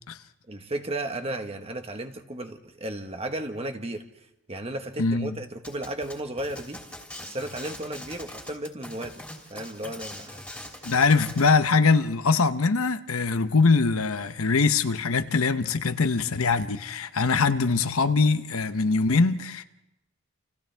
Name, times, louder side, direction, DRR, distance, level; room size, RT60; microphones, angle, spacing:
voice 1, 0.5-4.0 4.5-6.8 7.2-9.2 9.5-10.4, right 1 dB, 25° right, 1.4 m, -34 dB
voice 2, 5.0-5.4 10.8-19.6, left 4 dB, 70° left, 0.9 m, -22 dB
sound 1, 5.6-11.6, left 1 dB, 5° left, 3.0 m, -42 dB
29.0 x 28.0 x 3.5 m
head